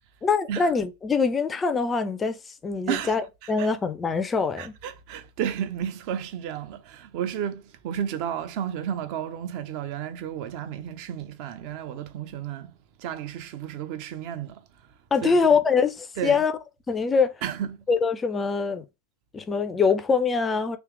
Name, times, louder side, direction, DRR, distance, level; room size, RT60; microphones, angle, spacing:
voice 1, 0.2-2.4 2.6-3.2 3.5-4.7 15.1-16.5 16.9-17.3 17.9-18.8 19.3-20.8, left 5 dB, 15° left, 0.5 m, -23 dB
voice 2, 2.9-3.7 4.6-12.7 13.0-14.6 15.2-15.4 16.2-16.5 17.4-17.8, right 9 dB, 45° right, 0.6 m, -32 dB
3.4 x 3.0 x 4.5 m
figure-of-eight pair, 90°, 0 cm